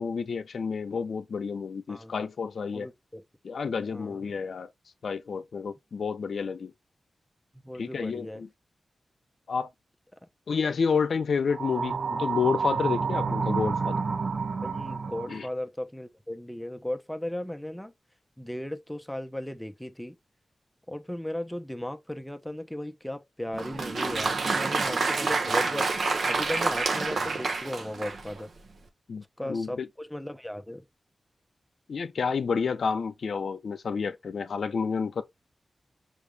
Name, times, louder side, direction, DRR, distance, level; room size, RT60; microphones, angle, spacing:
voice 1, 0.0-2.9 3.4-4.7 5.0-6.7 7.8-8.5 9.5-9.7 10.5-14.0 15.3-15.5 29.1-29.9 31.9-35.2, left 5 dB, 80° left, 0.6 m, -30 dB
voice 2, 2.7-3.2 3.9-4.2 7.6-8.4 14.6-17.9 18.4-20.2 20.9-25.9 26.2-28.5 29.2-30.8, left 1 dB, 5° left, 0.8 m, -36 dB
sound 1, 11.5-15.5, right 5 dB, 60° right, 0.4 m, -29 dB
Applause, 23.5-28.4, right 4 dB, 75° right, 1.0 m, -28 dB
6.0 x 2.5 x 3.3 m
wide cardioid pair, 75°, 0 cm